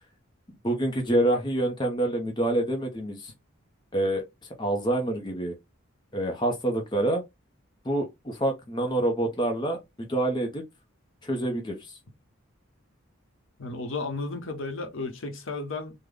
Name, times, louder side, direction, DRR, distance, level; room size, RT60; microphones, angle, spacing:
voice 1, 0.6-3.3 3.9-4.2 4.6-5.5 6.1-7.2 7.8-10.6 11.2-12.0, right 1 dB, 20° left, 0.6 m, -27 dB
voice 2, 13.6-15.9, left 3 dB, 65° left, 0.8 m, -33 dB
3.7 x 2.1 x 3.3 m
head